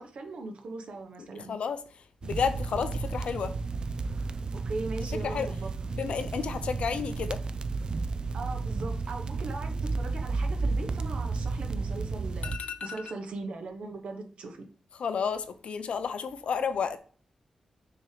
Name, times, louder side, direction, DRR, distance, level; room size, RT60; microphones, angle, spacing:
voice 1, 0.0-1.5 4.5-5.7 8.3-12.5 12.8-14.7, right 3 dB, 70° right, 1.1 m, -39 dB
voice 2, 1.5-3.6 5.2-5.5 5.9-7.4 12.4-13.0 14.9-17.0, left 6 dB, 75° left, 0.6 m, -31 dB
sound 1, 2.2-12.6, right 3 dB, 45° right, 0.4 m, -32 dB
6.3 x 3.0 x 4.9 m
wide cardioid pair, 95°, 2 cm